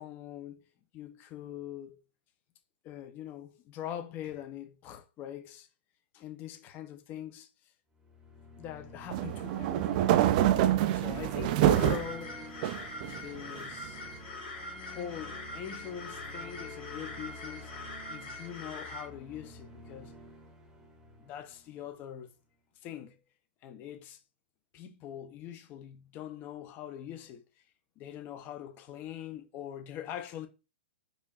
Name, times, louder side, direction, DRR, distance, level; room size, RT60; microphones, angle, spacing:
voice 1, 0.0-0.7 0.9-2.0 2.8-5.7 6.1-7.7 8.6-10.0 10.4-12.7 13.0-14.0 14.8-17.7 18.1-20.2 21.2-22.3 22.8-23.2 23.6-24.2 24.7-27.4 28.0-30.5, left 10 dB, 30° left, 0.6 m, -43 dB
sound 1, 7.9-22.1, left 1 dB, 10° right, 0.8 m, -49 dB
sound 2, 9.1-12.1 12.6-13.5, right 13 dB, 45° right, 0.3 m, -26 dB
sound 3, 11.7-19.0, left 2 dB, 55° left, 1.8 m, -43 dB
4.9 x 2.6 x 2.4 m
figure-of-eight pair, 115°, 6 cm